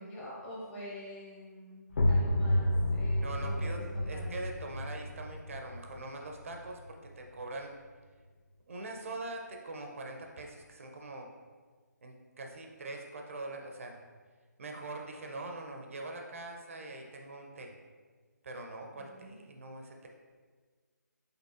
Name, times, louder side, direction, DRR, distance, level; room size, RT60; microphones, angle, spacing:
voice 1, 0.0-3.7 3.9-4.4 19.0-19.4, equal, 10° left, -6 dB, 0.7 m, -46 dB
sound 1, 1.9-7.4, left 1 dB, 45° left, 0.5 m, -31 dB
voice 2, 3.2-7.7 8.7-11.3 12.0-14.0 14.6-17.7 18.4-20.1, right 2 dB, 45° right, 2 dB, 0.5 m, -43 dB
5.3 x 3.8 x 2.4 m, 1.5 s
figure-of-eight pair, 155°, 10 cm